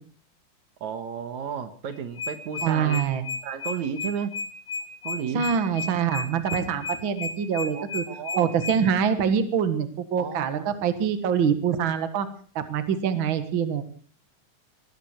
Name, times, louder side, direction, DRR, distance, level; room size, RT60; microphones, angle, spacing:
voice 1, 0.8-3.1 3.4-4.3 5.0-5.5 7.7-8.5 10.2-10.7, right 7 dB, 75° right, 9 dB, 2.7 m, -33 dB
sound 1, 1.9-8.8, left 4 dB, 75° left, 3.2 m, -32 dB
voice 2, 2.6-3.3 5.3-8.0 8.4-12.3 12.6-13.8, right 7 dB, 50° right, 9 dB, 2.0 m, -25 dB
20.0 x 16.0 x 4.4 m, 0.43 s
omnidirectional pair, 3.4 m